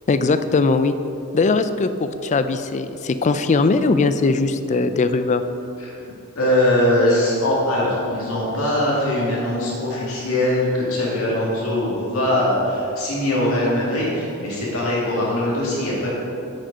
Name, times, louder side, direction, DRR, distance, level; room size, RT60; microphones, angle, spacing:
voice 1, 0.1-0.9 1.3-5.4, left 3 dB, 35° left, 10 dB, 0.4 m, -20 dB
voice 2, 6.4-16.1, left 1 dB, 70° left, -6 dB, 2.1 m, -21 dB
8.6 x 6.4 x 5.1 m, 2.8 s
head